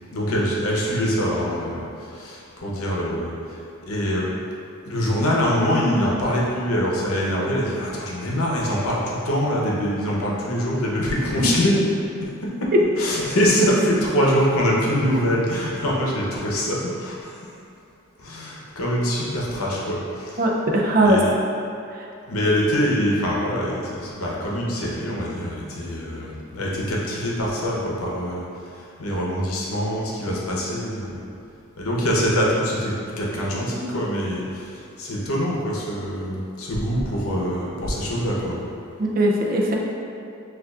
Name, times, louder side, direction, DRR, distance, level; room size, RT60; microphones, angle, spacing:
voice 1, 0.1-3.6 3.8-4.3 4.8-11.8 12.4-17.4 18.2-20.5 21.0-21.3 22.3-28.5 28.8-31.2 31.8-38.6, equal, 80° left, -4 dB, 0.8 m, -24 dB
voice 2, 20.4-21.2 39.0-39.8, right 1 dB, 40° right, -1 dB, 0.4 m, -19 dB
6.4 x 2.5 x 2.4 m, 2.6 s
head